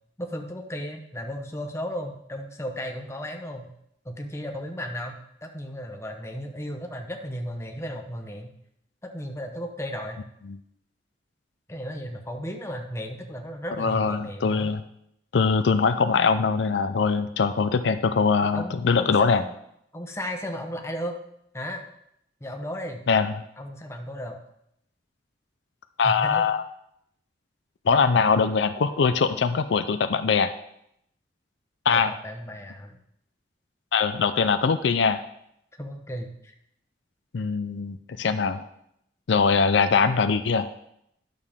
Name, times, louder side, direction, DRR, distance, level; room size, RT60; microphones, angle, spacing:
voice 1, 0.2-3.7 4.0-8.5 9.0-10.2 11.7-14.7 18.4-19.5 19.9-21.2 21.5-21.9 22.4-23.0 23.6-24.4 26.0-26.5 31.9-33.0 35.8-36.5, equal, 15° left, 3 dB, 0.9 m, -35 dB
voice 2, 13.8-14.8 15.3-19.4 23.1-23.4 26.0-26.6 27.9-30.5 31.9-32.1 33.9-35.2 37.3-38.7 39.3-40.7, left 5 dB, 80° left, 10 dB, 0.5 m, -22 dB
11.0 x 6.5 x 3.6 m, 0.76 s
head